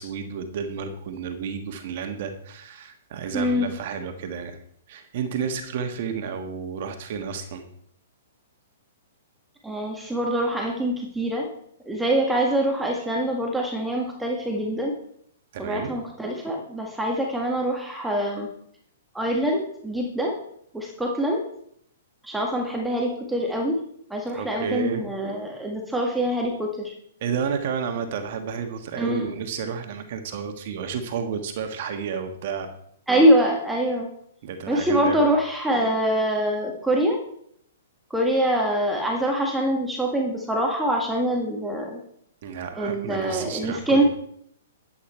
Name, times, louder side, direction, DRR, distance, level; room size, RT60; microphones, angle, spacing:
voice 1, 0.0-4.6 4.9-7.6 15.5-15.9 24.3-25.0 27.2-32.7 34.4-35.3 42.4-44.0, right 6 dB, 55° right, 6 dB, 1.5 m, -31 dB
voice 2, 3.3-3.7 9.6-11.5 11.9-14.9 15.6-18.5 19.1-20.3 20.7-21.4 22.2-23.8 24.1-26.9 29.0-29.3 33.1-34.1 34.7-37.2 38.1-42.0 42.8-44.0, right 1 dB, 5° right, 0 dB, 1.8 m, -24 dB
12.0 x 8.5 x 4.5 m, 0.71 s
hypercardioid pair, 130°, 0 cm